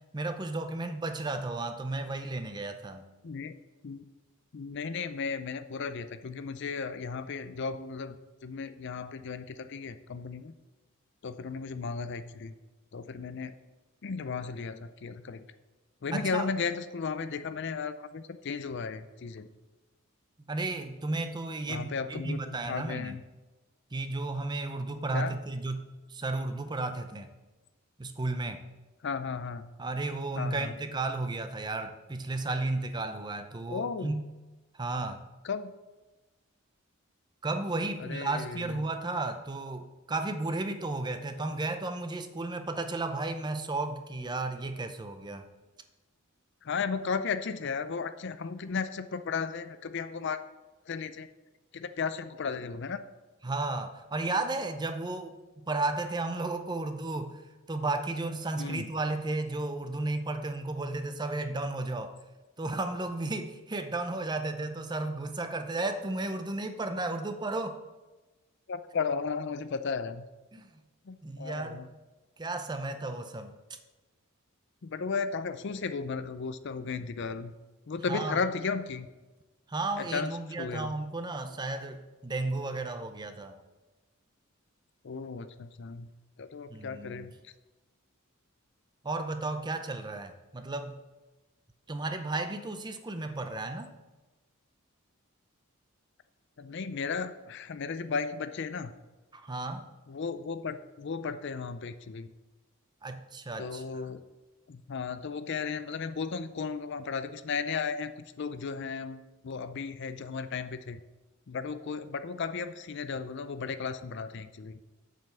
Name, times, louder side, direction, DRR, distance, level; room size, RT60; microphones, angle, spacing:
voice 1, 0.1-3.1 16.1-16.5 20.5-23.2 23.9-27.3 28.0-28.6 29.8-34.2 34.7-35.2 37.4-45.5 53.4-57.4 57.7-62.1 62.6-67.8 70.5-70.7 71.2-71.8 72.4-73.8 78.1-78.4 79.7-83.6 86.7-87.3 89.0-91.0 91.9-93.9 99.3-99.9 103.0-104.2, right 2 dB, 20° right, 8 dB, 0.5 m, -33 dB
voice 2, 4.5-8.2 8.4-10.5 11.2-12.5 12.9-13.5 14.0-15.4 16.0-19.5 21.7-23.2 25.1-25.3 29.0-29.7 30.4-30.7 33.7-34.2 35.4-35.7 38.0-38.8 46.6-50.4 50.9-51.3 51.7-53.0 58.6-58.9 68.7-70.2 71.1-71.9 74.8-77.5 77.9-79.1 80.1-80.3 80.6-80.9 85.0-86.1 86.4-87.3 96.6-98.9 100.1-102.3 103.6-104.2 104.7-108.1 108.4-111.0 111.5-114.8, left 5 dB, 55° left, 12 dB, 0.5 m, -35 dB
7.4 x 5.6 x 6.8 m, 1.1 s
head